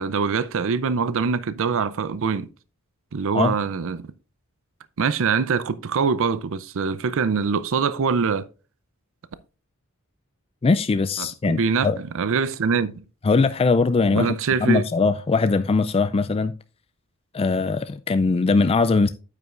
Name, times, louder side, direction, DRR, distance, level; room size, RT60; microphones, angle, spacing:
voice 1, 0.0-2.5 3.1-4.1 5.0-8.5 11.2-13.0 14.2-14.8, right 5 dB, 65° right, 0.5 m, -24 dB
voice 2, 10.6-12.0 13.2-16.5 17.3-19.1, left 4 dB, 25° left, 0.3 m, -21 dB
9.2 x 8.2 x 2.5 m
head